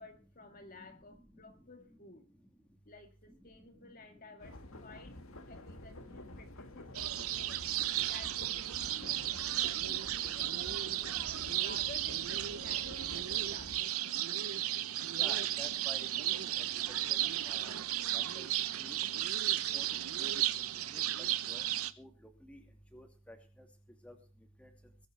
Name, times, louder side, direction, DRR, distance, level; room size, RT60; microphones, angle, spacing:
voice 1, 0.0-2.2 2.8-5.2 5.5-7.6 8.0-11.2 11.5-14.0, left 2 dB, 40° left, 5 dB, 2.1 m, -54 dB
sound 1, 4.4-13.8, left 1 dB, 70° left, 1.7 m, -50 dB
sound 2, 6.9-21.9, right 13 dB, 80° right, 0.8 m, -34 dB
voice 2, 15.1-17.7 18.1-18.5 18.8-19.0 19.7-19.9 20.2-20.4 20.9-21.0 21.5-21.6 22.0-22.1 22.5-22.6 22.9-23.4 24.0-24.2 24.6-24.7, equal, 5° left, 3 dB, 2.6 m, -51 dB
21.5 x 8.3 x 4.7 m, 0.34 s
head